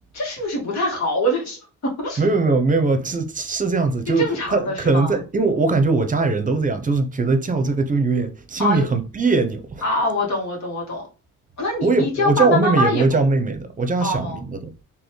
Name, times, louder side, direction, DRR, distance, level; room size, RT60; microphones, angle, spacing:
voice 1, 0.1-2.2 4.2-5.1 8.6-8.9 9.8-11.1 11.6-13.2 14.0-14.4, left 1 dB, 65° left, 1.9 m, -24 dB
voice 2, 2.2-4.2 4.5-9.8 11.8-14.6, right 3 dB, 25° right, 0.7 m, -20 dB
4.0 x 2.9 x 3.2 m
cardioid pair, 90°, 30 cm